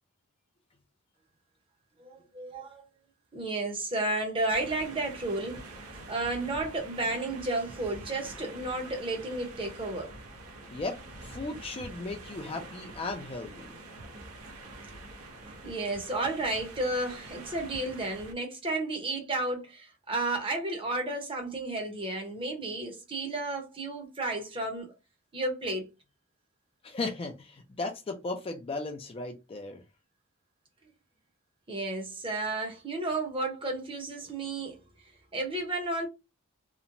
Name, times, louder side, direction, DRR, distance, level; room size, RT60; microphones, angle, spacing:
voice 1, 2.0-2.9 3.3-5.6 6.1-10.1 15.4-24.9 25.3-25.9 31.7-34.8 35.3-36.1, right 2 dB, 25° right, 0.7 m, -32 dB
sound 1, 4.5-18.3, right 2 dB, 90° right, 0.7 m, -46 dB
voice 2, 10.7-13.7 26.8-29.8, left 3 dB, 25° left, 0.4 m, -36 dB
2.9 x 2.1 x 2.5 m
head